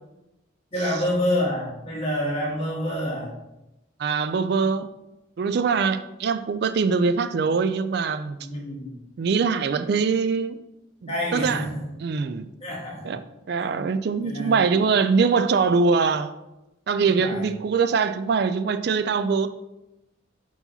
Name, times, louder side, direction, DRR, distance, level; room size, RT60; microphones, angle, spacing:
voice 1, 0.7-3.3 8.4-9.0 11.1-11.9 12.3-13.2 14.1-14.7 17.2-17.5, equal, 30° left, 2.0 m, -28 dB
voice 2, 4.0-4.9 5.4-8.4 9.2-10.6 11.0-11.6 12.0-12.5 13.0-13.2 13.5-16.3 16.9-19.5, right 5 dB, 55° right, 0.3 m, -23 dB
4.7 x 4.0 x 5.6 m
head